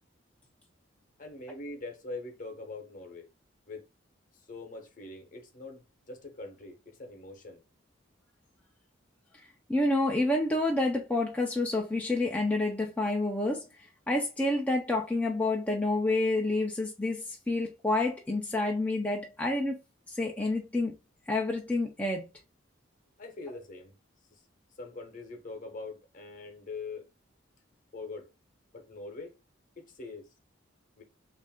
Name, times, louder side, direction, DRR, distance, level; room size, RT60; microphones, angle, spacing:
voice 1, 1.2-3.3 3.7-3.8 4.5-7.6 23.2-23.9 24.3-24.4 24.8-27.1 27.9-28.3 28.7-29.3 29.8-30.3 31.0-31.1, left 3 dB, 40° left, 0.9 m, -43 dB
voice 2, 9.7-13.7 14.1-19.8 20.1-20.9 21.3-22.3, left 2 dB, 5° left, 0.5 m, -28 dB
3.2 x 2.5 x 3.5 m
head